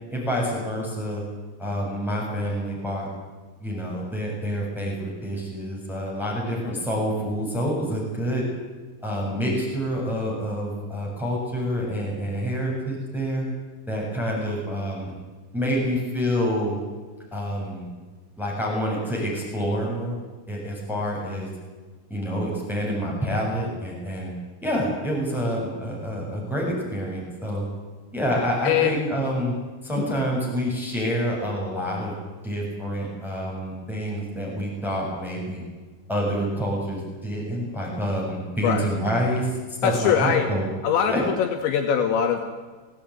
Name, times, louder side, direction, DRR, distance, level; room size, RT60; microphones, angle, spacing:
voice 1, 0.1-1.2 1.6-3.1 3.6-8.5 9.0-13.4 13.9-15.1 15.5-16.8 17.3-17.9 18.4-20.2 20.5-21.5 22.1-24.3 24.6-27.7 28.1-29.5 29.8-32.1 32.4-35.6 36.1-40.7 41.1-41.2, equal, ahead, -3 dB, 7.2 m, -27 dB
voice 2, 28.6-29.1 30.1-30.2 38.6-38.9 39.8-40.5 40.8-42.4, left 8 dB, 75° left, 5 dB, 3.6 m, -22 dB
22.0 x 17.5 x 9.5 m, 1.4 s
omnidirectional pair, 5.5 m